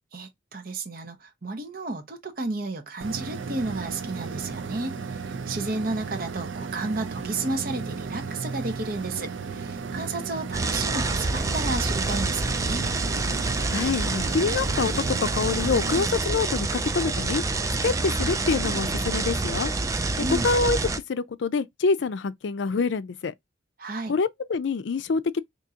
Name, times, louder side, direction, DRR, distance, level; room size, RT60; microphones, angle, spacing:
voice 1, 0.1-12.9 20.2-20.5 23.8-24.1, right 3 dB, 50° right, 0.9 m, -32 dB
sound 1, 3.0-16.0, right 5 dB, 80° right, 0.5 m, -34 dB
sound 2, 10.5-21.0, right 3 dB, 15° right, 0.4 m, -27 dB
voice 2, 13.7-17.4 17.8-19.7 20.4-20.8 21.1-23.3 24.1-25.4, left 4 dB, 70° left, 0.4 m, -26 dB
3.7 x 2.8 x 2.8 m
head